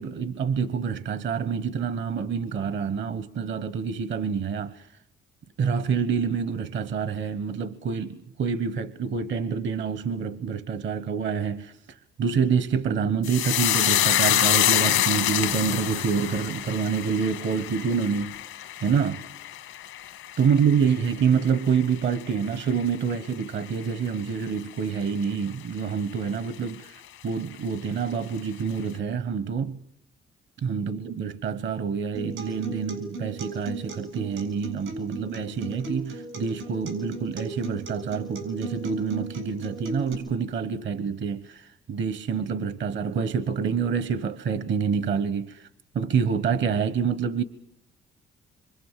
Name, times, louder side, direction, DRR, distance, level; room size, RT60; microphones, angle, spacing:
voice 1, 0.0-4.9 5.6-18.4 18.8-19.3 20.4-29.8 30.6-45.7 45.9-47.4, right 6 dB, 70° right, 1.2 m, -27 dB
sound 1, 13.2-21.8 22.1-22.8 23.1-23.3, left 12 dB, 90° left, 1.8 m, -26 dB
Acoustic guitar, 32.1-40.1, right 2 dB, 90° right, 7.7 m, -36 dB
26.5 x 25.0 x 7.5 m
cardioid pair, 90°, 20 cm